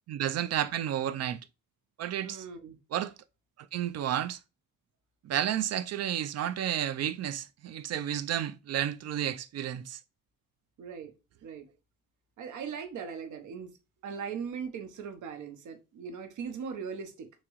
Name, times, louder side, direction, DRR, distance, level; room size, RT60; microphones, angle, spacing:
voice 1, 0.1-1.4 2.0-2.4 2.9-3.1 3.7-4.4 5.2-10.0, right 10 dB, 60° right, 0.4 m, -31 dB
voice 2, 2.2-2.8 10.8-11.1 11.4-11.7 12.4-13.7 14.0-17.3, right 6 dB, 85° right, 0.8 m, -39 dB
3.6 x 2.9 x 2.9 m
cardioid pair, 120°, 29 cm